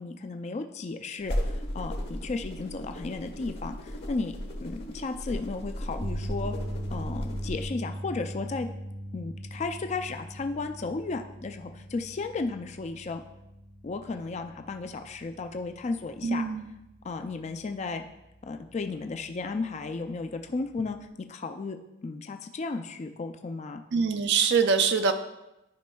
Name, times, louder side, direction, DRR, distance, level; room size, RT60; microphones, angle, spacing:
voice 1, 0.0-4.3 4.6-6.5 6.9-8.7 9.1-13.2 13.8-16.5 17.0-18.0 18.4-23.8, left 3 dB, 35° left, 6 dB, 0.4 m, -34 dB
sound 1, 1.2-7.7, equal, 55° left, 1.2 m, -35 dB
sound 2, 6.0-18.3 18.6-18.9 21.1-21.2, equal, 10° right, 0.6 m, -40 dB
voice 2, 16.2-16.7 23.9-25.1, right 5 dB, 60° right, 7 dB, 0.5 m, -24 dB
11.5 x 5.2 x 2.3 m, 0.92 s
head